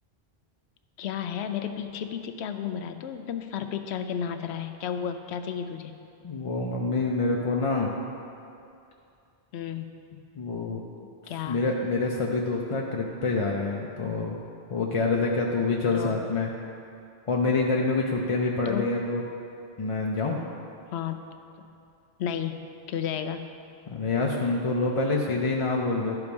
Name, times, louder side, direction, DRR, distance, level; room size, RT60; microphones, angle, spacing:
voice 1, 1.0-5.9 9.5-10.0 11.3-11.6 15.9-16.2 18.7-18.9 20.9-21.2 21.6-21.7 22.2-23.5, left 8 dB, 90° left, 8 dB, 0.9 m, -33 dB
voice 2, 6.2-7.9 10.4-10.8 11.4-14.4 14.7-16.5 17.3-19.2 19.8-20.4 23.9-26.2, left 3 dB, 40° left, -1 dB, 0.5 m, -26 dB
12.0 x 4.7 x 5.2 m, 2.6 s
omnidirectional pair, 1.1 m